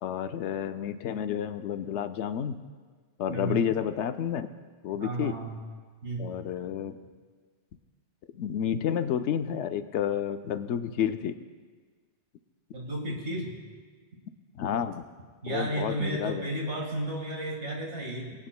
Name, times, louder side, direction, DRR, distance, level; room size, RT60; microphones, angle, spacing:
voice 1, 0.0-2.6 3.2-4.5 4.8-5.3 6.2-7.0 8.3-11.3 14.5-15.0 15.5-16.5, left 9 dB, 75° left, 10 dB, 0.9 m, -30 dB
voice 2, 3.3-3.7 5.0-5.6 6.0-6.4 12.7-13.6 15.4-18.3, right 1 dB, 75° right, -1 dB, 2.1 m, -33 dB
22.5 x 9.1 x 2.2 m, 1.5 s
omnidirectional pair, 1.2 m